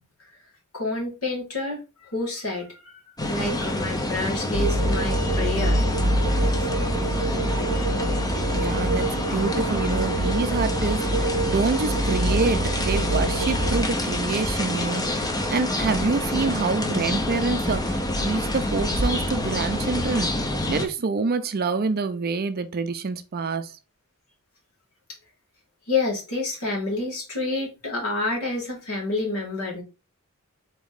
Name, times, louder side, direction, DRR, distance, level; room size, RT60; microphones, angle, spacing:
voice 1, 0.7-5.8 6.6-6.7 7.0-7.1 25.9-29.8, left 3 dB, 85° left, 2.3 m, -29 dB
sound 1, 3.2-20.9, left 1 dB, 15° left, 0.6 m, -27 dB
sound 2, 4.5-13.8, right 1 dB, 90° right, 0.6 m, -25 dB
voice 2, 8.5-23.8, right 4 dB, 45° right, 0.5 m, -27 dB
4.0 x 3.0 x 3.7 m
head